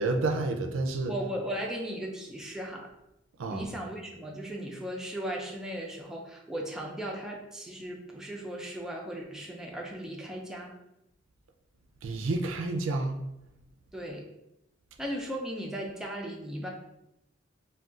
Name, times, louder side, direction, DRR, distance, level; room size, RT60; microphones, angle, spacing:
voice 1, 0.0-1.1 3.4-3.6 12.0-13.2, right 2 dB, 80° right, 3 dB, 0.4 m, -29 dB
voice 2, 1.1-2.9 3.5-10.7 13.9-14.2 15.0-16.7, equal, 5° right, -1 dB, 0.4 m, -37 dB
2.4 x 2.2 x 3.6 m, 0.87 s
head